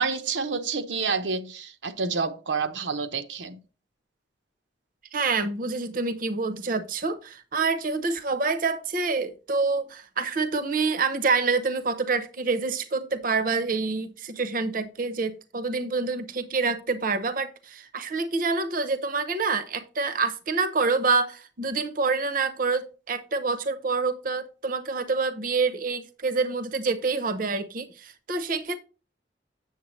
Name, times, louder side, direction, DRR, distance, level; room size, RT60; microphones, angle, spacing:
voice 1, 0.0-3.6, right 5 dB, 80° right, 0.9 m, -28 dB
voice 2, 5.1-28.8, right 4 dB, 50° right, 0.8 m, -27 dB
8.2 x 7.0 x 3.1 m
head